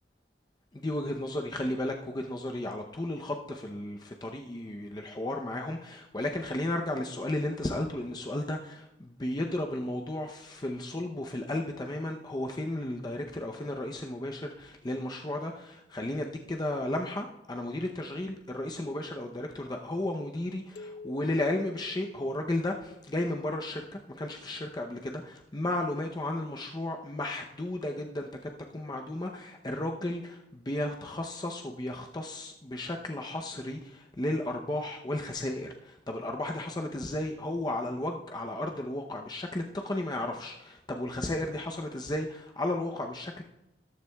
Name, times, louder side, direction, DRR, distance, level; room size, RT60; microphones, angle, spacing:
voice 1, 0.7-43.4, left 1 dB, 25° left, 2 dB, 0.7 m, -34 dB
sound 1, 20.8-23.2, left 3 dB, 70° left, 0.8 m, -48 dB
13.5 x 12.5 x 2.3 m, 0.92 s
head